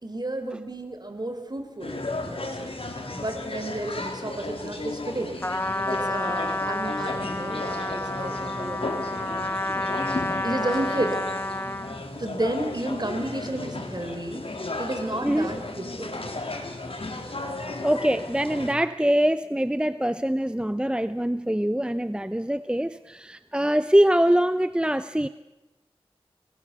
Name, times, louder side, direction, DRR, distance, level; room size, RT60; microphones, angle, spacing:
voice 1, 0.0-2.7 3.1-5.4 5.9-9.5 10.4-11.2 12.2-16.2, right 1 dB, 40° right, 6 dB, 4.6 m, -32 dB
sound 1, 1.8-18.7, left 2 dB, 65° left, 3.7 m, -34 dB
Trumpet, 5.4-12.0, left 1 dB, 20° left, 1.4 m, -30 dB
voice 2, 17.8-25.3, equal, 10° right, 12 dB, 0.7 m, -24 dB
30.0 x 20.0 x 7.0 m, 1.0 s
wide cardioid pair, 45°, 10 cm